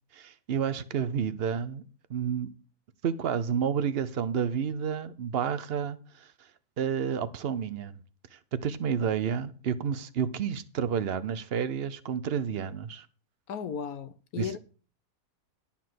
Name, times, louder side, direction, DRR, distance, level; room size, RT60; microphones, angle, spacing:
voice 1, 0.1-1.8 2.1-2.5 3.0-6.3 6.8-8.0 8.3-13.1 14.4-14.5, right 7 dB, 60° right, 0.6 m, -30 dB
voice 2, 13.5-14.6, left 7 dB, 70° left, 1.1 m, -35 dB
11.5 x 4.3 x 7.6 m
omnidirectional pair, 1.7 m